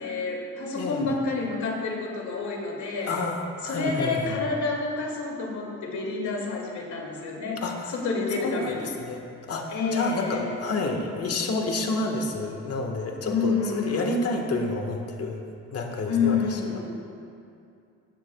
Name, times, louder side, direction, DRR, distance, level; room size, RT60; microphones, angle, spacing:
voice 1, 0.0-3.2 3.6-8.9 9.7-10.5 13.2-14.0 16.1-16.9, left 4 dB, 70° left, -1 dB, 2.6 m, -29 dB
voice 2, 0.7-1.1 3.1-4.3 7.6-7.9 8.4-8.7 9.0-15.4 15.7-16.6, left 2 dB, 55° left, 2 dB, 1.6 m, -29 dB
17.5 x 12.0 x 2.4 m, 2.5 s
cardioid pair, 90°, 30 cm